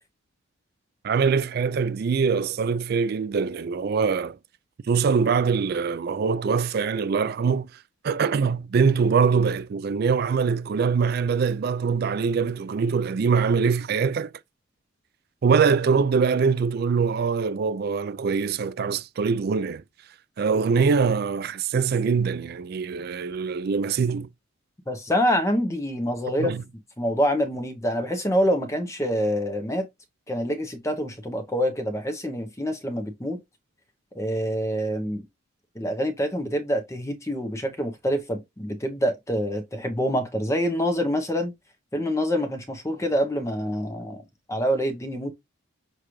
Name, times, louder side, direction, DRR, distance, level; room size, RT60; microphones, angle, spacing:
voice 1, 1.0-4.4 4.9-7.7 8.0-14.3 15.4-19.8 20.4-24.3 26.4-26.6, right 5 dB, 50° right, 0.3 m, -23 dB
voice 2, 24.9-26.5 27.0-29.9 30.3-33.4 34.1-35.2 35.8-41.5 41.9-44.2 44.5-45.3, equal, 15° left, 0.7 m, -26 dB
6.6 x 2.4 x 3.0 m
head